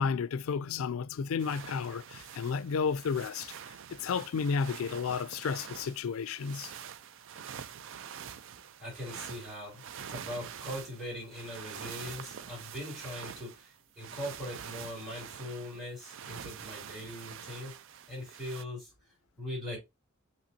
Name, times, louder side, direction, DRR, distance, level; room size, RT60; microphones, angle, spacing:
voice 1, 0.0-6.7, left 5 dB, 75° left, 0.4 m, -32 dB
sound 1, 1.4-18.6, right 8 dB, 65° right, 0.4 m, -46 dB
voice 2, 8.8-17.7 18.1-18.9 19.4-19.8, left 1 dB, ahead, 2.7 m, -41 dB
5.8 x 3.1 x 2.7 m
head